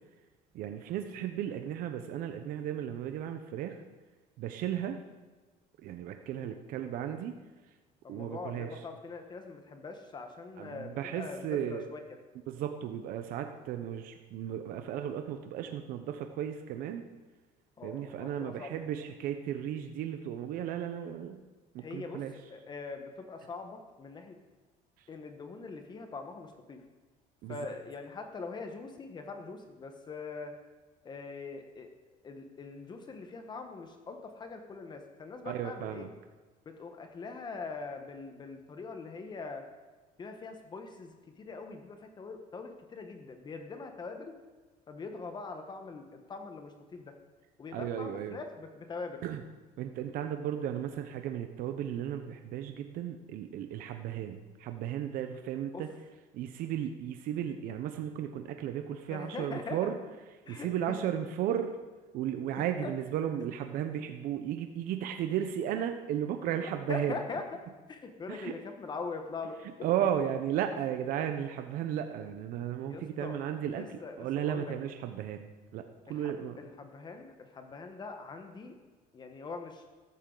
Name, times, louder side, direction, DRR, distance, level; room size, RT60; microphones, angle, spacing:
voice 1, 0.5-3.8 4.4-5.0 5.8-7.3 8.1-8.8 10.6-11.9 12.5-17.0 17.8-21.4 21.7-22.3 27.4-27.7 35.4-36.1 47.7-48.4 49.2-49.4 49.8-55.9 56.3-60.0 60.5-61.7 62.1-67.1 68.3-68.5 69.8-76.6, right 10 dB, 65° right, 7 dB, 0.8 m, -35 dB
voice 2, 6.3-6.7 8.0-12.2 17.8-18.7 21.8-22.2 22.5-24.4 25.1-26.8 27.5-30.5 31.0-31.9 32.2-36.1 36.6-39.6 40.2-44.3 44.9-47.1 47.6-49.2 55.7-55.9 59.1-59.8 60.5-60.7 62.8-62.9 66.9-67.4 67.9-69.6 72.9-73.4 73.7-74.7 76.1-78.8 79.1-79.8, left 4 dB, 30° left, 5 dB, 1.2 m, -42 dB
14.0 x 12.0 x 4.0 m, 1.3 s
cardioid pair, 140°, 16 cm